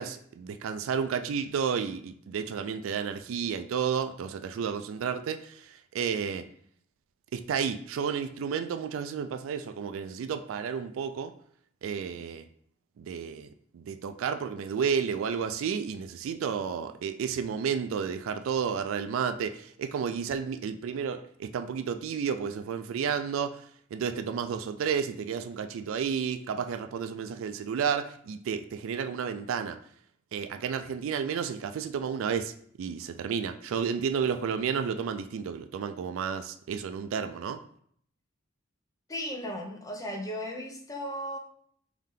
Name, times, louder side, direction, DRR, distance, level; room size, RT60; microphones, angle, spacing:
voice 1, 0.0-6.4 7.3-11.3 11.8-12.5 13.0-23.6 23.9-29.8 30.3-37.6, right 7 dB, 70° right, 9 dB, 0.3 m, -31 dB
voice 2, 39.1-41.4, equal, 15° left, 1 dB, 0.6 m, -36 dB
3.5 x 2.7 x 3.6 m, 0.62 s
head